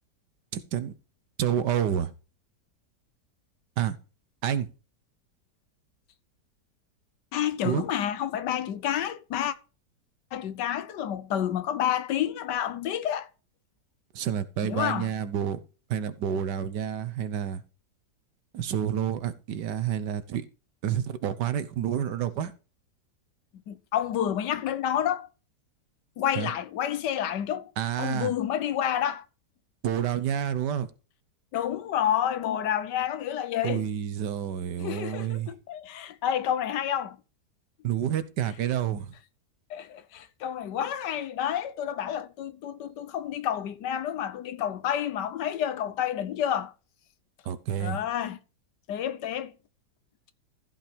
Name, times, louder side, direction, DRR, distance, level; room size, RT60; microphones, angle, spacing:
voice 1, 0.5-0.9 1.4-2.1 3.8-4.0 4.4-4.7 7.6-7.8 14.1-15.6 15.9-17.6 18.5-20.4 20.8-22.5 26.4-26.5 27.8-28.3 29.8-30.9 33.6-35.5 37.8-39.1 47.4-48.0, right 9 dB, 80° right, 1.6 m, -29 dB
voice 2, 7.3-9.5 10.3-13.3 14.6-15.1 23.7-25.3 26.2-27.7 28.0-29.2 31.5-33.8 34.8-37.2 39.7-46.7 47.8-48.4 48.9-49.5, left 10 dB, 80° left, 1.5 m, -29 dB
14.5 x 5.6 x 5.0 m
omnidirectional pair, 1.8 m